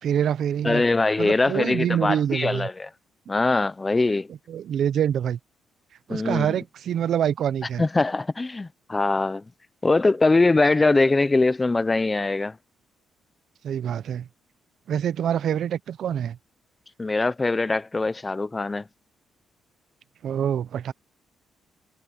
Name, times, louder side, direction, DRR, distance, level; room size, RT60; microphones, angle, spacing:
voice 1, 0.0-0.8 1.2-2.7 4.5-5.4 6.1-7.8 13.6-14.3 14.9-16.4 20.2-20.9, right 9 dB, 65° right, 0.8 m, -25 dB
voice 2, 0.6-2.9 3.3-4.3 6.1-6.5 7.8-9.4 9.8-12.6 17.0-18.9, left 3 dB, 20° left, 0.8 m, -22 dB
cardioid pair, 90°, 0 cm